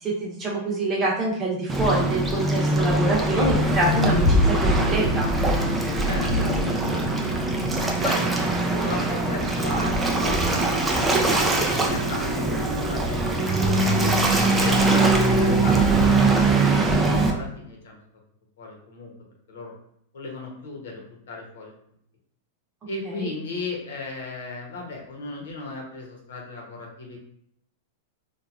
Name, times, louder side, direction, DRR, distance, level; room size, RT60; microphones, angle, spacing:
voice 1, 0.0-5.3 23.2-23.3, right 1 dB, 25° right, -3 dB, 0.9 m, -25 dB
Waves surf, 1.7-17.3, right 2 dB, 10° right, 0.4 m, -22 dB
voice 2, 6.0-7.3 8.0-14.0 14.6-18.0 18.6-19.1 19.5-19.7 20.1-21.7 22.8-27.2, left 2 dB, 80° left, -1 dB, 0.9 m, -36 dB
2.9 x 2.3 x 2.5 m, 0.71 s
hypercardioid pair, 135°, 0 cm